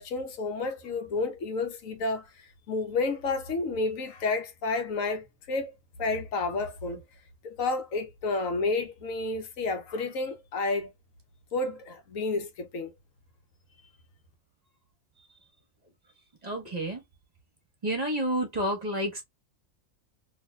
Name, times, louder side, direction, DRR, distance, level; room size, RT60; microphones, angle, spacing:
voice 1, 0.0-5.7 6.0-7.0 7.4-10.9 11.5-12.9, left 3 dB, 85° left, 1.3 m, -31 dB
voice 2, 16.4-17.0 17.8-19.2, right 1 dB, 30° right, 1.4 m, -29 dB
4.0 x 2.9 x 2.4 m
omnidirectional pair, 1.3 m